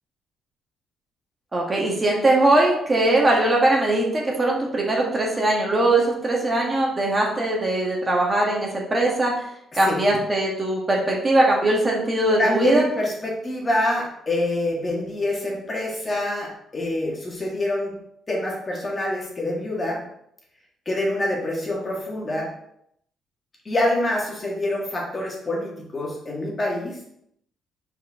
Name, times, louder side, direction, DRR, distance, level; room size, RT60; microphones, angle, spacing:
voice 1, 1.5-9.3 9.7-12.8, right 2 dB, 25° right, -2 dB, 1.6 m, -21 dB
voice 2, 12.4-17.9 18.3-20.0 20.9-22.5 23.7-27.0, left 1 dB, 30° left, -3 dB, 2.0 m, -26 dB
5.5 x 4.6 x 3.7 m, 0.73 s
cardioid pair, 90°, 0 cm